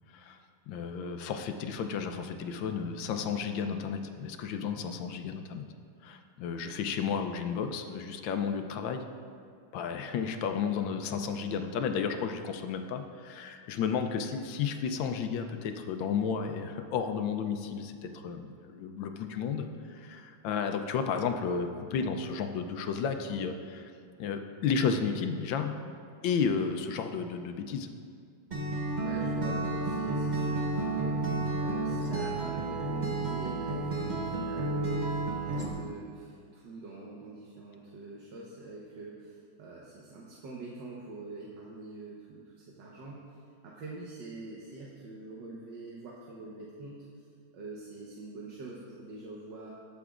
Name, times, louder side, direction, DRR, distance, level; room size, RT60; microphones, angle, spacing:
voice 1, 0.7-5.7 6.0-9.0 9.7-23.9 24.2-25.7 26.2-27.9, left 6 dB, 70° left, 6 dB, 1.3 m, -32 dB
Acoustic guitar, 28.5-35.7, right 2 dB, 45° right, 0.5 m, -31 dB
voice 2, 28.9-47.1 47.5-49.7, right 2 dB, 60° right, -4 dB, 1.6 m, -45 dB
20.5 x 7.0 x 2.5 m, 2.2 s
omnidirectional pair, 2.4 m